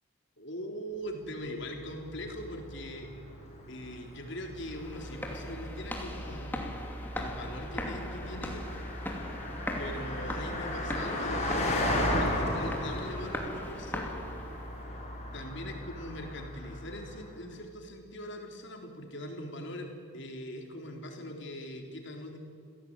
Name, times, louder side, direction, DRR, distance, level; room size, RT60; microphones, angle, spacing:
voice 1, 0.4-3.1 3.7-6.8 7.2-8.8 9.8-14.2 15.3-22.4, left 1 dB, 55° left, 3 dB, 3.8 m, -41 dB
Car passing by, 1.6-17.3, left 1 dB, 30° left, 6.0 m, -36 dB
sound 1, 4.6-14.7, left 1 dB, 10° left, 2.8 m, -40 dB
27.5 x 17.0 x 8.9 m, 2.4 s
head